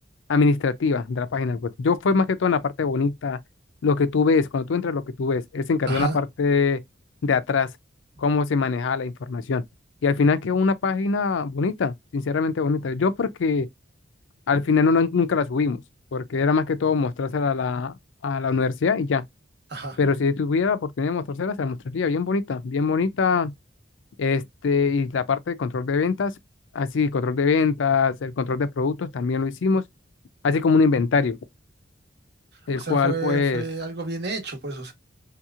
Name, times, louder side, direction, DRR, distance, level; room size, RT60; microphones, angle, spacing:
voice 1, 0.3-3.4 3.8-6.8 7.2-7.7 8.2-9.6 10.0-13.7 14.5-15.8 16.1-17.9 18.2-19.2 20.0-23.5 24.2-26.3 26.7-29.8 30.4-31.4 32.7-33.6, left 4 dB, 85° left, 0.4 m, -23 dB
voice 2, 32.7-34.9, right 3 dB, 60° right, 1.1 m, -30 dB
3.4 x 2.8 x 2.4 m
head